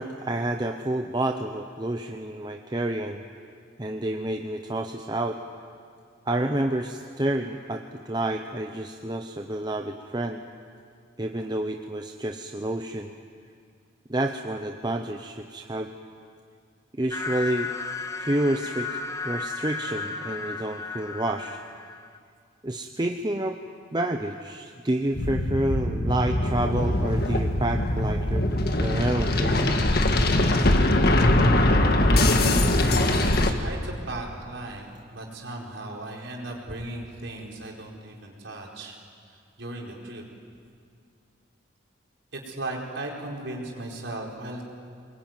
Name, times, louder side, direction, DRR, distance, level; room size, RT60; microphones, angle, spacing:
voice 1, 0.0-3.2 3.8-5.4 6.3-10.4 11.2-13.1 14.1-15.9 17.0-17.7 18.2-21.6 22.6-23.6 23.9-28.5 28.8-29.8, right 1 dB, 20° right, 4 dB, 0.8 m, -29 dB
sound 1, 17.1-22.2, left 4 dB, 15° left, 0.7 m, -34 dB
sound 2, 25.1-33.5, left 1 dB, 50° left, 1.7 m, -22 dB
voice 2, 33.1-39.0 39.3-40.2 42.3-44.6, right 2 dB, 65° right, -1 dB, 4.7 m, -37 dB
24.0 x 21.5 x 9.3 m, 2.3 s
head